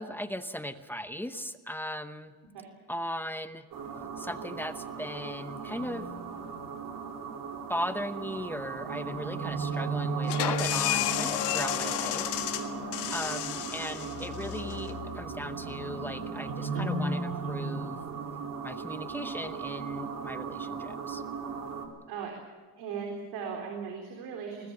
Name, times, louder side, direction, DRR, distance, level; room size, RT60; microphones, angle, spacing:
voice 1, 0.0-2.3 2.9-3.7 4.2-6.1 7.7-12.3 12.9-18.0 18.6-21.2, equal, 5° left, 10 dB, 0.8 m, -37 dB
sound 1, 3.7-21.9, right 4 dB, 55° right, 3.5 m, -36 dB
sound 2, 10.2-15.7, left 12 dB, 85° left, 1.8 m, -32 dB
voice 2, 22.8-24.7, right 6 dB, 75° right, 2 dB, 3.9 m, -38 dB
21.0 x 20.0 x 7.0 m, 1.4 s
cardioid pair, 140°, 40 cm